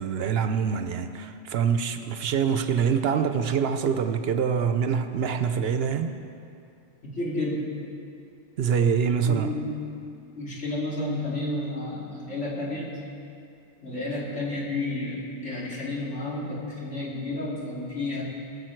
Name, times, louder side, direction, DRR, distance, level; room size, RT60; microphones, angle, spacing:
voice 1, 0.0-6.1 8.6-9.5, right 7 dB, 65° right, 9 dB, 0.8 m, -25 dB
voice 2, 7.0-7.7 9.2-9.8 10.4-12.9 13.8-18.2, left 2 dB, 85° left, -5 dB, 2.8 m, -31 dB
20.0 x 6.9 x 4.5 m, 2.5 s
omnidirectional pair, 1.2 m